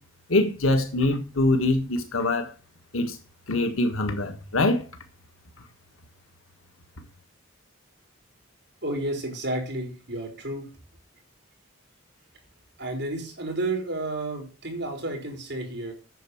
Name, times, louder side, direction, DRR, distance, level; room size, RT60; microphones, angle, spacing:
voice 1, 0.3-2.5 2.9-3.2 3.5-4.9, left 2 dB, 80° left, 1.6 m, -24 dB
voice 2, 8.8-10.7 12.8-15.9, right 2 dB, 55° right, 4.3 m, -31 dB
9.3 x 7.4 x 7.8 m
head